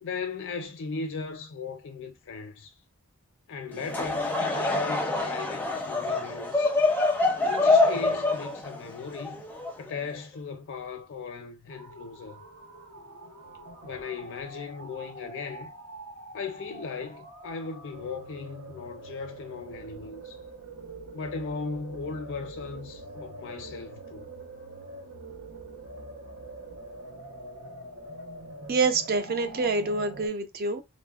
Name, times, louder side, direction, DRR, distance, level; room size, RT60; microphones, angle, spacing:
voice 1, 0.0-2.7 3.5-6.7 7.4-9.4 9.8-12.4 13.8-15.7 16.3-20.4 21.1-24.3, left 4 dB, 60° left, 0.5 m, -37 dB
Laughter / Crowd, 3.7-10.2, left 3 dB, 10° left, 0.5 m, -26 dB
sound 1, 11.7-30.3, right 2 dB, 75° right, 0.9 m, -44 dB
voice 2, 28.7-30.8, right 3 dB, 45° right, 0.5 m, -26 dB
3.6 x 2.0 x 2.3 m
head